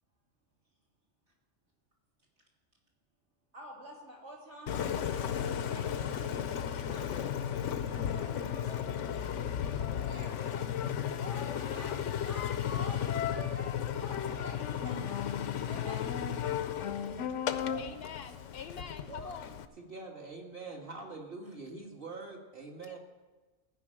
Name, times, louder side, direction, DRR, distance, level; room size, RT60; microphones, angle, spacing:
voice 1, 3.5-4.9 5.4-7.1 7.9-10.7 11.2-15.1 15.6-16.1 17.6-17.8 19.1-19.3, equal, 70° right, -4 dB, 3.5 m, -48 dB
Engine, 4.7-19.7, left 9 dB, 90° left, 1.0 m, -34 dB
voice 2, 17.8-19.6, left 7 dB, 65° left, 9 dB, 0.7 m, -45 dB
voice 3, 19.8-23.0, right 3 dB, 50° right, 0 dB, 2.0 m, -44 dB
15.0 x 5.5 x 8.8 m, 1.2 s
omnidirectional pair, 1.2 m